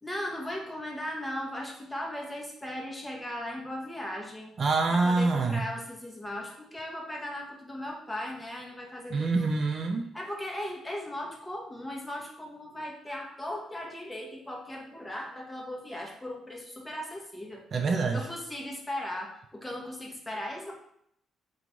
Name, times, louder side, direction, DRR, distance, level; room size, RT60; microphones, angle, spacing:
voice 1, 0.0-4.5 4.9-9.6 10.1-17.7 18.1-20.7, left 1 dB, 10° left, -1 dB, 0.8 m, -37 dB
voice 2, 4.6-5.7 9.1-10.1 17.7-18.2, right 3 dB, 45° right, 3 dB, 0.4 m, -26 dB
3.0 x 2.3 x 3.8 m, 0.72 s
cardioid pair, 90°, 0 cm